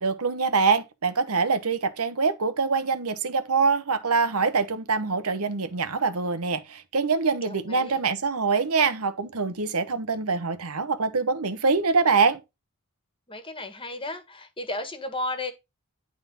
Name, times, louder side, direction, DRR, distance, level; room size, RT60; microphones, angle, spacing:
voice 1, 0.0-12.4, right 4 dB, 80° right, 1.1 m, -24 dB
voice 2, 7.4-8.0 13.3-15.5, left 2 dB, 25° left, 1.6 m, -34 dB
11.0 x 3.8 x 5.4 m
head